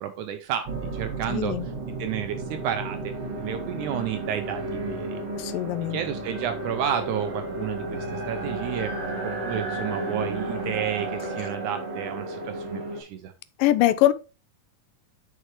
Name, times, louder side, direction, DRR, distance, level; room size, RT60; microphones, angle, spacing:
voice 1, 0.0-1.7 2.0-5.2 5.9-8.9 9.2-13.3, right 10 dB, 75° right, 2.0 m, -31 dB
sound 1, 0.7-13.0, right 2 dB, 50° right, 2.8 m, -33 dB
voice 2, 1.3-1.7 5.4-6.0 13.6-14.1, left 14 dB, 80° left, 2.3 m, -22 dB
9.4 x 5.6 x 3.1 m
omnidirectional pair, 3.9 m